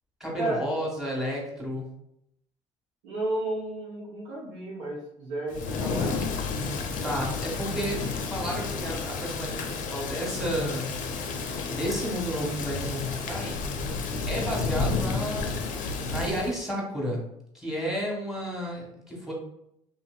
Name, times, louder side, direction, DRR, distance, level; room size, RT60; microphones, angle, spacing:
voice 1, 0.2-1.9 7.0-10.9 11.7-13.6 14.3-15.5 16.0-17.2 17.5-19.3, equal, ahead, -3 dB, 1.3 m, -32 dB
voice 2, 3.0-6.2, right 2 dB, 85° right, -4 dB, 1.1 m, -32 dB
Thunder / Rain, 5.5-16.6, left 4 dB, 60° left, 0.5 m, -31 dB
2.9 x 2.6 x 2.3 m, 0.78 s
hypercardioid pair, 60°, 15 cm